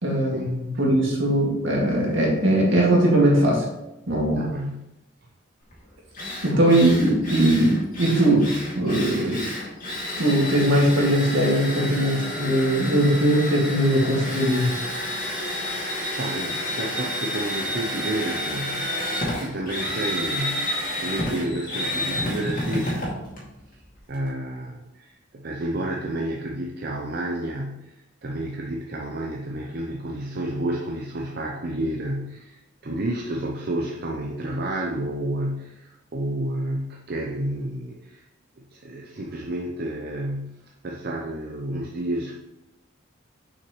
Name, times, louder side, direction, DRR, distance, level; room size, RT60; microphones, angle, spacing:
voice 1, 0.0-3.6 4.1-4.5 6.4-8.5 8.8-9.4 10.2-14.7, right 1 dB, 70° right, -2 dB, 2.0 m, -20 dB
voice 2, 4.3-5.0 6.5-6.8 15.4-15.8 16.2-19.0 19.4-23.2 24.1-32.6 32.8-38.2 38.7-42.4, right 1 dB, 50° right, 0 dB, 0.6 m, -30 dB
Drill, 5.7-5.8 6.1-24.3, left 1 dB, 45° left, 2.1 m, -30 dB
6.7 x 5.8 x 3.1 m, 0.95 s
head